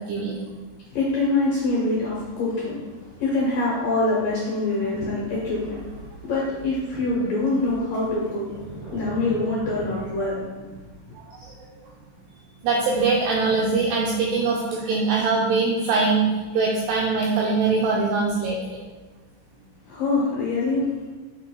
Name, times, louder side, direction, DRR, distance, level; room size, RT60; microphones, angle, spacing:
voice 1, 0.9-2.8 3.2-5.8 6.2-8.5 8.9-10.7 19.9-20.9, left 2 dB, 75° left, -6 dB, 2.0 m, -24 dB
sound 1, 4.6-4.7 4.9-5.5 6.0-6.1 6.6-7.3 7.6-9.9, right 2 dB, 50° right, 2.3 m, -40 dB
voice 2, 12.6-16.3 16.5-18.6, right 4 dB, 90° right, -2 dB, 2.3 m, -22 dB
6.6 x 6.6 x 2.2 m, 1.3 s
omnidirectional pair, 5.3 m